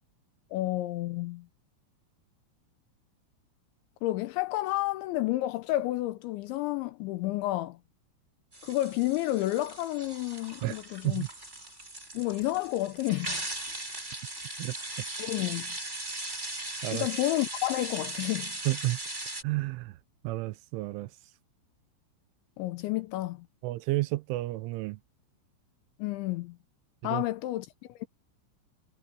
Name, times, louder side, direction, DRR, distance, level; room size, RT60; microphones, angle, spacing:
voice 1, 0.5-1.5 4.0-7.8 8.6-11.2 12.1-13.5 15.2-15.7 16.9-18.6 22.6-23.5 26.0-26.6 27.0-28.1, left 16 dB, 80° left, 2.8 m, -30 dB
sound 1, 8.5-19.4, right 2 dB, 15° right, 5.9 m, -39 dB
voice 2, 18.7-19.0 19.4-20.0 20.2-21.1 23.6-25.0 27.0-27.2, right 19 dB, 80° right, 3.0 m, -31 dB
omnidirectional pair, 5.8 m